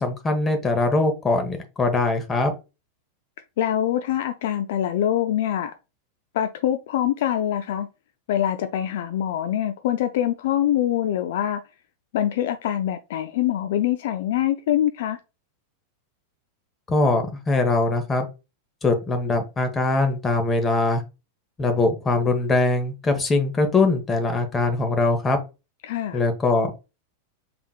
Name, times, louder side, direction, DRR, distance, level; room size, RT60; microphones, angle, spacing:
voice 1, 0.0-2.5 16.9-18.3 18.8-21.0 21.6-25.4 26.1-26.8, left 2 dB, 20° left, 1.1 m, -22 dB
voice 2, 3.6-5.7 6.3-7.9 8.3-11.6 12.1-15.2 25.8-26.2, left 11 dB, 55° left, 0.4 m, -24 dB
5.8 x 3.5 x 2.3 m
figure-of-eight pair, 90°, 0 cm